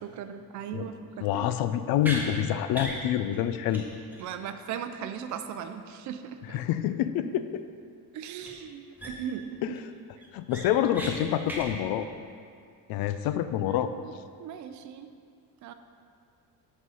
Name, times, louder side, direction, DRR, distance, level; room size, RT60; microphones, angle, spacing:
voice 1, 0.0-1.5 4.2-6.6 8.1-9.8 13.7-14.1 14.4-15.1 15.6-15.7, right 8 dB, 50° right, 8 dB, 0.5 m, -38 dB
voice 2, 1.2-3.8 6.5-7.6 9.6-9.8 10.3-12.1 12.9-13.9, left 11 dB, 70° left, 11 dB, 0.5 m, -27 dB
sound 1, 2.0-2.2 2.7-3.0 3.3-3.4 3.7-3.8 4.1-4.2 8.4-8.5 9.0-9.4 9.8-9.9 10.2-11.1 11.4-11.7, right 1 dB, 5° right, 1.0 m, -36 dB
6.1 x 5.5 x 5.6 m, 2.3 s
cardioid pair, 145°, 37 cm